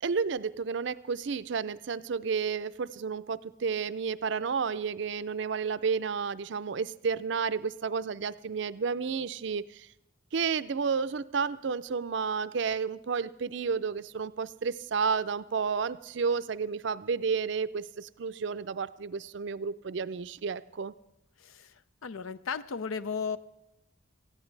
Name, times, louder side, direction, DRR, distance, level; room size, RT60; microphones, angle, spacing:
voice 1, 0.0-9.9 10.3-20.9, right 5 dB, 60° right, 15 dB, 0.4 m, -31 dB
voice 2, 21.4-21.7 22.0-23.4, left 6 dB, 90° left, 15 dB, 0.6 m, -35 dB
18.5 x 14.5 x 3.3 m, 0.88 s
head